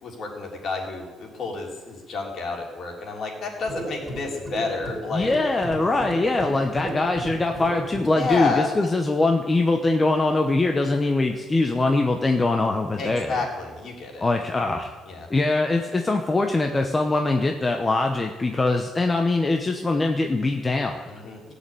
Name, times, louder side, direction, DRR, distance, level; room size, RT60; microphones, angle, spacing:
voice 1, 0.0-5.3 8.1-8.7 13.0-14.3 15.1-15.3 21.1-21.5, left 3 dB, 45° left, 0 dB, 3.5 m, -30 dB
sound 1, 3.6-8.7, right 1 dB, 5° right, 3.6 m, -35 dB
voice 2, 5.1-13.4 14.2-14.9 15.3-21.0, left 2 dB, 15° left, 4 dB, 0.9 m, -22 dB
17.5 x 6.9 x 9.0 m, 1.3 s
cardioid pair, 155°, 0 cm